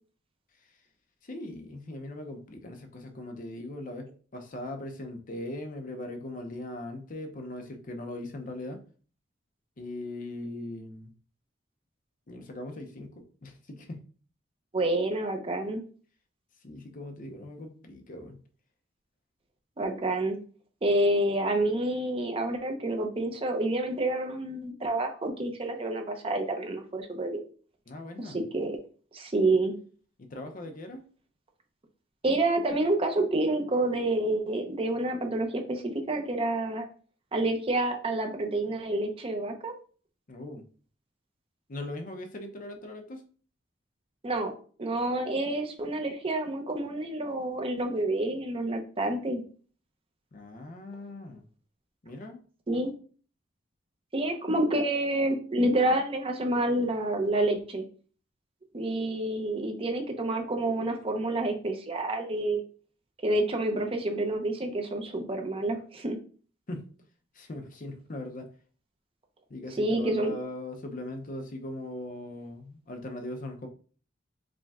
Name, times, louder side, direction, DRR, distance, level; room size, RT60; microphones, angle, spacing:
voice 1, 1.2-8.8 9.8-11.1 12.3-14.0 16.6-18.4 27.9-28.4 30.2-31.0 40.3-40.6 41.7-43.2 50.3-51.4 52.0-52.4 66.7-66.9 67.3-68.5 69.5-73.7, left 1 dB, 45° left, 5 dB, 0.7 m, -40 dB
voice 2, 14.7-15.8 19.8-20.4 20.8-27.4 28.2-28.8 29.1-29.7 32.2-36.9 37.3-39.7 44.2-44.5 44.8-49.4 52.7-52.9 54.1-57.8 58.7-62.6 63.2-66.2 69.8-70.3, right 2 dB, 30° right, 4 dB, 0.7 m, -28 dB
5.0 x 2.3 x 3.5 m, 0.41 s
head